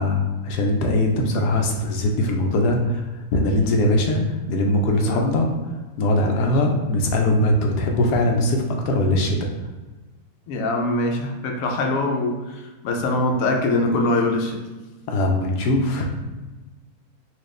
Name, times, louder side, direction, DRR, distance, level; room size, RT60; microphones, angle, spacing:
voice 1, 0.0-3.0 3.3-4.2 4.5-5.5 6.0-9.5 15.1-16.3, left 1 dB, 85° left, 2 dB, 1.2 m, -21 dB
voice 2, 4.9-5.3 6.3-6.5 10.5-14.6, left 2 dB, 65° left, 2 dB, 0.9 m, -23 dB
4.4 x 2.4 x 3.2 m, 1.2 s
omnidirectional pair, 1.7 m